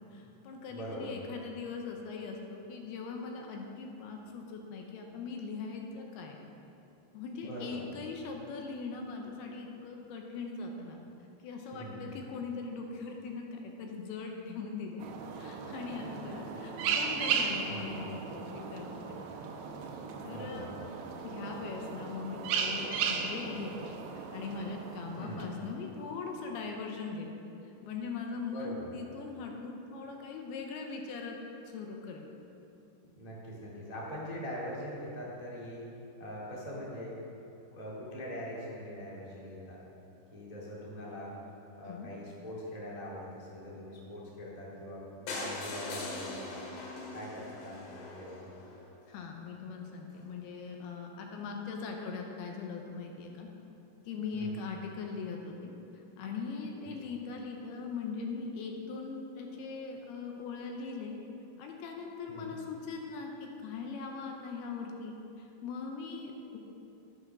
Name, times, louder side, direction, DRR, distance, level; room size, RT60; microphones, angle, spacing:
voice 1, 0.1-6.4 7.1-11.0 11.4-15.0 15.4-19.2 20.2-20.7 21.2-27.3 27.8-31.4 31.7-32.4 41.8-42.1 49.1-53.5 54.0-55.7 56.2-61.2 61.6-66.6, left 4 dB, 80° left, 2 dB, 2.8 m, -40 dB
voice 2, 0.7-1.1 7.4-7.8 11.7-12.1 16.0-16.4 17.7-18.0 20.2-20.7 25.1-25.5 28.5-28.9 33.1-35.8 36.2-37.2 37.7-39.8 40.3-41.3 41.8-46.6 47.1-48.4 54.3-54.6 56.7-56.9 62.3-62.5, equal, 20° left, -5 dB, 1.1 m, -42 dB
sound 1, 15.0-25.9, right 6 dB, 80° right, 3.0 m, -36 dB
sound 2, 45.3-49.2 49.8-49.9 50.1-50.3 50.5-50.6 50.8-50.9, left 2 dB, 65° left, 3.2 m, -41 dB
11.5 x 8.4 x 6.1 m, 2.8 s
omnidirectional pair, 4.7 m